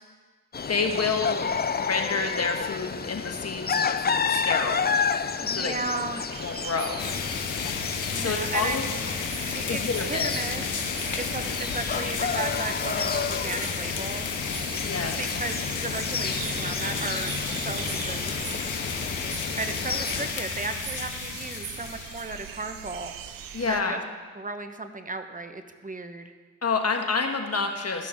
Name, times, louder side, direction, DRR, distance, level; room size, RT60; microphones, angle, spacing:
sound 1, 0.5-20.3, left 6 dB, 30° left, 0.5 m, -31 dB
voice 1, 0.7-1.5 1.8-4.8 5.5-5.7 6.4-7.0 8.2-8.8 9.7-10.3 14.8-15.3 23.5-24.0 26.6-28.1, left 4 dB, 50° left, 4 dB, 1.3 m, -28 dB
voice 2, 5.4-6.3 8.1-9.1 9.5-10.6 11.2-14.3 15.2-18.6 19.6-23.1 23.7-24.0 24.3-26.3, right 3 dB, 25° right, 8 dB, 1.0 m, -35 dB
sound 2, 6.3-23.8, right 9 dB, 85° right, 0.6 m, -41 dB
sound 3, 7.0-22.5, left 5 dB, 65° left, 1.1 m, -32 dB
15.5 x 6.0 x 3.6 m, 1.4 s
supercardioid pair, 40°, 33 cm